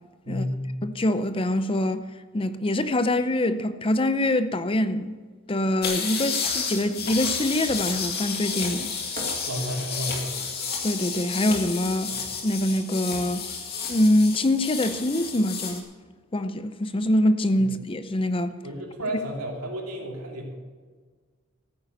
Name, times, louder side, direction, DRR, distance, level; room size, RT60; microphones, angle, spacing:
voice 1, 0.2-0.7 9.4-10.3 12.1-12.2 17.6-17.7 18.6-20.5, equal, 80° right, 3.1 m, -32 dB
voice 2, 0.8-2.1 2.3-5.2 5.5-8.9 10.8-12.2 12.4-13.4 13.9-15.8 16.3-18.5, left 1 dB, 25° left, 0.5 m, -24 dB
sound 1, 5.8-15.8, left 5 dB, 45° left, 2.2 m, -31 dB
Fireworks, 7.7-8.3 9.1-12.3, right 2 dB, 40° right, 2.1 m, -46 dB
14.5 x 9.1 x 6.5 m
head